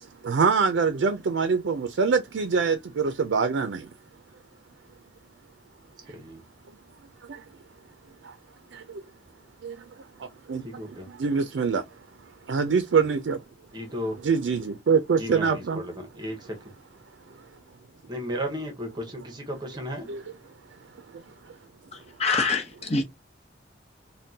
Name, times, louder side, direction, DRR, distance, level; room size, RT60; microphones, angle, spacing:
voice 1, 0.2-3.8 9.6-9.7 10.5-10.6 11.2-11.8 12.5-13.4 14.2-15.8 20.1-20.2, right 5 dB, 75° right, 0.4 m, -24 dB
voice 2, 13.7-14.2 15.2-16.4 18.1-20.1, equal, 25° right, 0.8 m, -34 dB
voice 3, 22.2-23.0, left 4 dB, 35° left, 0.9 m, -24 dB
3.6 x 2.2 x 2.7 m
head